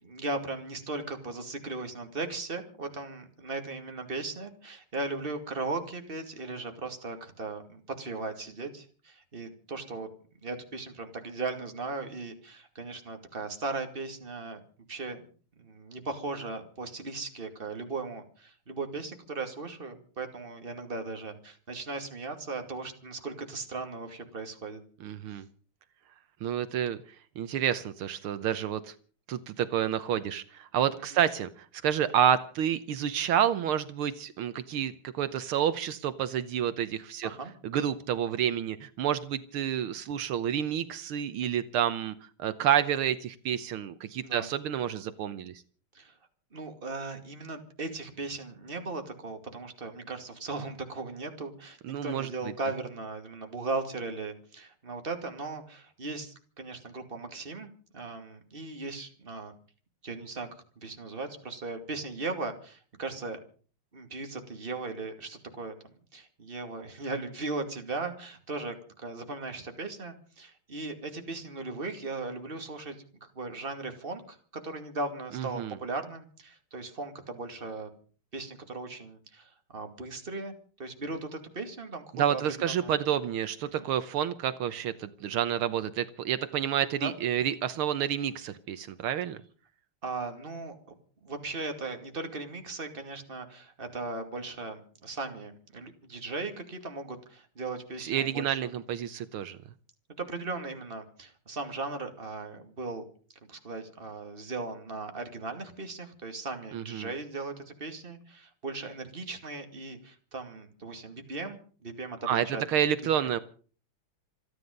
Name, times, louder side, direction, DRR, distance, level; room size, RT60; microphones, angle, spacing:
voice 1, 0.0-10.1 10.4-14.6 14.9-15.2 15.6-24.8 31.1-31.2 37.2-37.5 44.2-44.5 45.9-46.2 46.5-59.5 60.0-60.5 60.8-63.4 63.9-65.8 66.1-74.4 74.6-77.9 78.3-80.5 80.8-82.0 82.3-82.9 83.7-83.8 87.0-87.1 90.0-90.9 91.2-98.6 100.2-103.0 103.5-112.8 113.2-113.3, right 3 dB, 25° right, 6 dB, 2.5 m, -37 dB
voice 2, 25.0-25.4 26.4-27.0 27.4-28.9 29.3-31.5 31.8-37.3 37.6-42.1 42.4-45.5 51.8-52.3 75.3-75.8 82.1-89.4 98.0-99.6 106.7-107.1 112.3-113.4, right 9 dB, 75° right, 13 dB, 1.8 m, -29 dB
27.5 x 9.9 x 5.3 m, 0.41 s
omnidirectional pair, 2.4 m